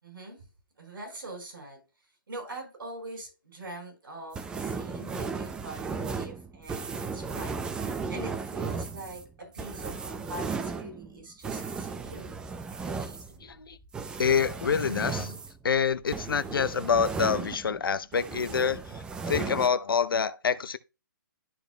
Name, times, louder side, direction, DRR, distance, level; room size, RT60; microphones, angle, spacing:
voice 1, 0.0-0.4 0.8-1.8 2.3-7.6 8.1-12.5, right 1 dB, 80° right, 4.5 m, -43 dB
sound 1, 4.3-17.8 18.1-19.7, right 5 dB, 5° right, 0.4 m, -35 dB
voice 2, 13.4-13.8 14.2-15.4 15.6-20.8, left 6 dB, 85° left, 0.7 m, -27 dB
12.5 x 5.2 x 2.2 m
hypercardioid pair, 150°, 11 cm